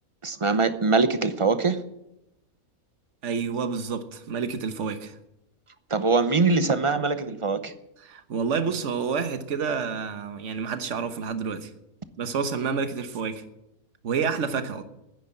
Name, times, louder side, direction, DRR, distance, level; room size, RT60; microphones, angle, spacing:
voice 1, 0.2-1.8 5.9-7.7, right 4 dB, 30° right, 0.7 m, -23 dB
voice 2, 3.2-5.2 8.0-11.7 12.2-13.4 14.0-14.8, right 5 dB, 55° right, 1.4 m, -29 dB
10.0 x 10.0 x 9.9 m
omnidirectional pair, 1.5 m